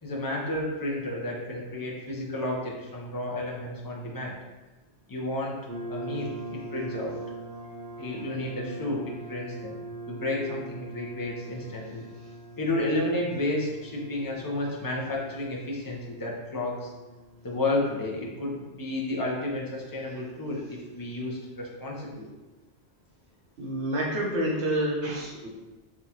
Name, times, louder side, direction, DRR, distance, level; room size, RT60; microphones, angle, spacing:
voice 1, 0.0-4.4 5.1-5.6 5.9-7.2 8.0-9.8 10.1-12.0 12.6-16.9 17.4-22.3, left 1 dB, 25° left, -3 dB, 0.6 m, -31 dB
sound 1, 5.7-20.1, right 2 dB, 50° right, 0.6 m, -42 dB
voice 2, 23.6-25.5, right 1 dB, 80° right, -3 dB, 1.2 m, -28 dB
3.7 x 3.6 x 2.9 m, 1.1 s
omnidirectional pair, 1.1 m